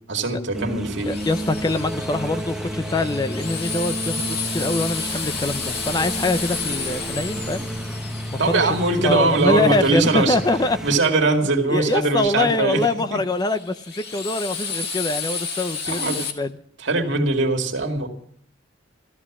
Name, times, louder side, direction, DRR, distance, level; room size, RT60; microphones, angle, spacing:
voice 1, 0.1-1.1 8.4-10.4 10.8-13.2 15.9-16.2 16.8-18.1, right 3 dB, 70° right, 2.2 m, -21 dB
sound 1, 0.5-11.0, right 1 dB, 5° right, 1.0 m, -31 dB
Drill, 1.0-9.9 13.3-16.3, left 5 dB, 60° left, 1.9 m, -32 dB
voice 2, 1.1-7.7 8.3-8.7 9.0-11.0 11.7-16.6, left 2 dB, 20° left, 0.6 m, -24 dB
14.5 x 13.5 x 6.0 m
head